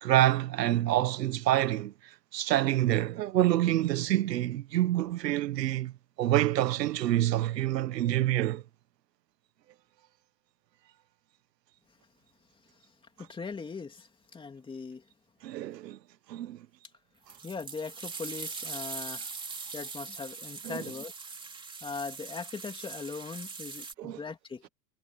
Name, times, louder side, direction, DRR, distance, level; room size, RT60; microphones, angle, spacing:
voice 1, 0.0-5.9 6.2-8.6 15.4-16.0 16.3-16.7 20.6-20.9 24.0-24.2, right 14 dB, 75° right, 1.6 m, -27 dB
voice 2, 13.2-15.0 17.4-19.3 19.7-21.1 21.8-24.7, left 4 dB, 10° left, 2.8 m, -40 dB
sound 1, 17.3-23.9, right 4 dB, 10° right, 3.0 m, -41 dB
supercardioid pair, 150°, 49 cm